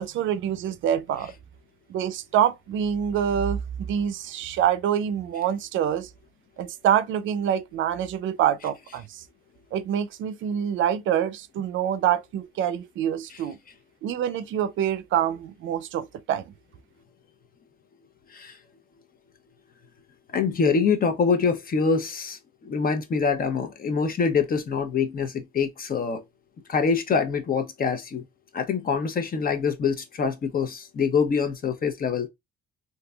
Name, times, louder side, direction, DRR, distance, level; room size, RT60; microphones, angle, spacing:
voice 1, 0.0-1.3 1.9-3.6 3.9-6.1 6.6-9.2 9.7-13.6 14.0-16.4, right 9 dB, 75° right, 0.5 m, -26 dB
voice 2, 20.3-26.2 26.7-28.2 28.5-32.3, left 5 dB, 45° left, 0.8 m, -25 dB
3.6 x 2.7 x 2.2 m
cardioid pair, 90°, 20 cm